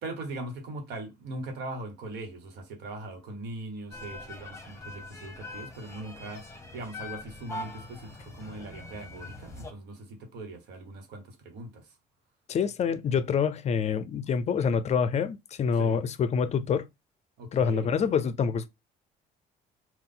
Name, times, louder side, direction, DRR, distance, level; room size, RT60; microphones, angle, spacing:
voice 1, 0.0-6.5 6.7-11.9 15.7-16.0 17.4-17.9, right 2 dB, 80° right, 1.3 m, -40 dB
sound 1, 3.9-9.7, left 2 dB, 15° left, 1.0 m, -42 dB
voice 2, 12.5-16.9 17.5-18.7, left 6 dB, 40° left, 0.4 m, -26 dB
3.9 x 2.4 x 3.7 m
cardioid pair, 110°, 17 cm